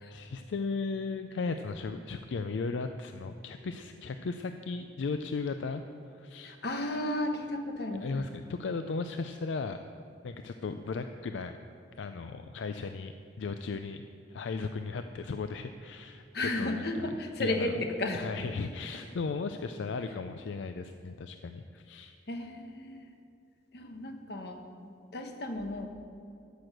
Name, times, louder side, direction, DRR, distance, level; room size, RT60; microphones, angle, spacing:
voice 1, 0.1-5.8 6.2-6.5 8.0-9.8 10.2-11.6 12.0-14.0 14.3-17.1 17.4-17.7 18.1-22.1, left 4 dB, 80° left, 8 dB, 0.4 m, -36 dB
voice 2, 6.4-8.2 16.3-18.3 22.3-23.1 23.7-25.9, left 1 dB, 60° left, 5 dB, 1.1 m, -34 dB
13.5 x 6.1 x 6.5 m, 2.5 s
head